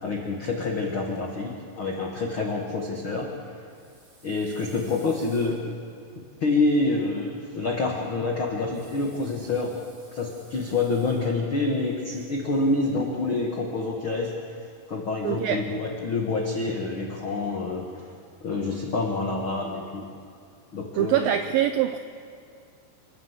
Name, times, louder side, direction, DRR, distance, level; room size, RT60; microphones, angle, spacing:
voice 1, 0.0-3.3 4.2-5.8 6.4-9.8 10.1-18.1 18.4-20.1 20.7-21.3, left 3 dB, 80° left, 0 dB, 1.1 m, -27 dB
sound 1, 3.7-6.7 8.7-11.5 11.8-12.9, right 2 dB, 65° right, 8.3 m, -56 dB
voice 2, 15.2-15.6 21.0-22.0, right 11 dB, 85° right, 8 dB, 2.0 m, -24 dB
27.0 x 12.0 x 8.2 m, 2.3 s
omnidirectional pair, 4.9 m